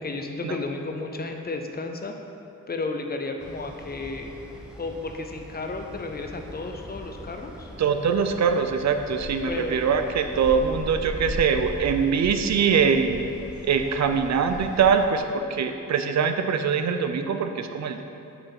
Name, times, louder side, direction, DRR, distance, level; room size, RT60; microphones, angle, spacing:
voice 1, 0.0-2.1 2.7-4.3 4.8-7.7 9.5-9.8, left 3 dB, 30° left, 4 dB, 0.5 m, -33 dB
sound 1, 3.4-15.1, left 1 dB, 5° right, 0.8 m, -39 dB
voice 2, 7.8-13.2 13.6-18.0, right 6 dB, 60° right, 7 dB, 0.5 m, -23 dB
6.8 x 5.7 x 5.9 m, 2.9 s
wide cardioid pair, 175°, 31 cm